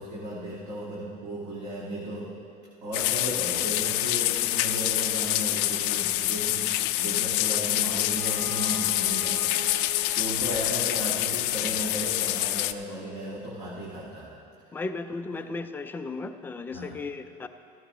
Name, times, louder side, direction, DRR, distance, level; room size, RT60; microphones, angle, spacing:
voice 1, 0.0-2.3 2.8-14.3 15.4-15.5 16.7-16.9, right 1 dB, 40° right, -7 dB, 2.0 m, -35 dB
sound 1, 2.9-12.7, left 16 dB, 80° left, 0.4 m, -26 dB
Bowed string instrument, 7.8-12.5, right 2 dB, 80° right, 1.6 m, -41 dB
voice 2, 14.7-17.5, left 3 dB, 10° left, 8 dB, 0.4 m, -35 dB
14.5 x 14.0 x 3.1 m, 2.5 s
cardioid pair, 175°, 18 cm